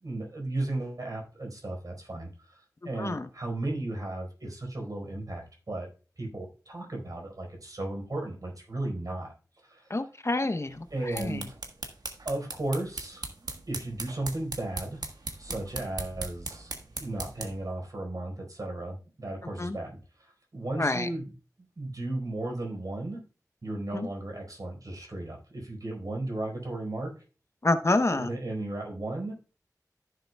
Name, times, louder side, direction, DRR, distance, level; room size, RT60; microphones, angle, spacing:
voice 1, 0.0-5.9 6.2-9.3 9.6-10.0 10.9-11.5 12.2-13.3 13.7-15.0 15.4-16.7 17.0-21.3 21.8-23.2 23.6-27.1 28.1-29.3, right 2 dB, 65° right, 1 dB, 4.4 m, -35 dB
voice 2, 9.9-10.8 11.1-11.4 19.6-19.8 20.8-21.1 23.9-24.1 27.6-28.3, left 2 dB, 45° left, 9 dB, 0.8 m, -27 dB
sound 1, 10.9-17.7, right 3 dB, 90° right, 1.4 m, -39 dB
14.5 x 6.8 x 2.3 m, 0.35 s
wide cardioid pair, 55°, 7 cm